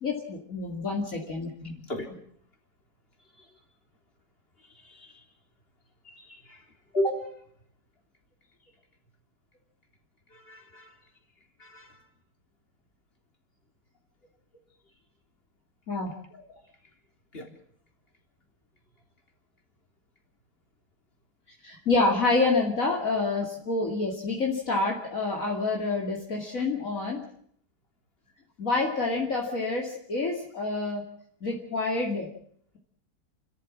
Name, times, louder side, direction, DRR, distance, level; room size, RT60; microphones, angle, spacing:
voice 1, 0.0-1.7 15.9-16.4 21.6-27.2 28.6-31.0 31.4-32.3, left 3 dB, 55° left, 0 dB, 2.9 m, -28 dB
voice 2, 6.1-6.6 6.9-7.2 10.3-10.9 11.6-11.9 17.3-17.5, equal, 35° left, 3 dB, 4.0 m, -32 dB
30.0 x 14.0 x 7.4 m, 0.63 s
omnidirectional pair, 1.7 m